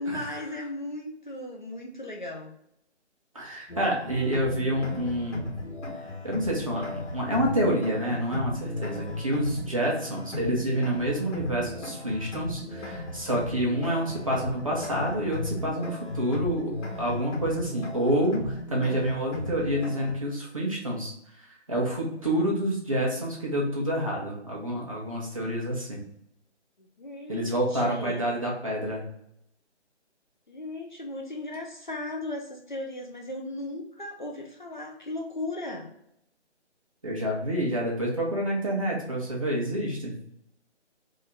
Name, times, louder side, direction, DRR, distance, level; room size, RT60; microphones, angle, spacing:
voice 1, 0.0-2.5 26.8-28.2 30.5-35.9, left 2 dB, 45° left, 1 dB, 0.5 m, -36 dB
voice 2, 3.3-5.5 6.2-16.7 17.0-21.1 21.4-26.0 27.3-29.0 37.0-40.1, right 1 dB, 30° right, -3 dB, 0.6 m, -28 dB
sound 1, 3.7-20.1, left 2 dB, 85° left, 1.2 m, -36 dB
2.7 x 2.7 x 3.3 m, 0.76 s
hypercardioid pair, 170°, 35 cm